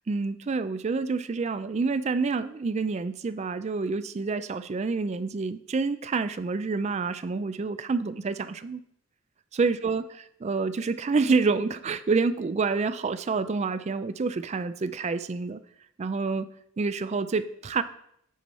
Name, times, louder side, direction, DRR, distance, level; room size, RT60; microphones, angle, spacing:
voice 1, 0.1-8.8 9.5-10.1 10.4-15.6 16.0-16.5 16.8-17.8, right 4 dB, 30° right, 13 dB, 0.3 m, -28 dB
9.2 x 4.2 x 4.7 m, 0.72 s
head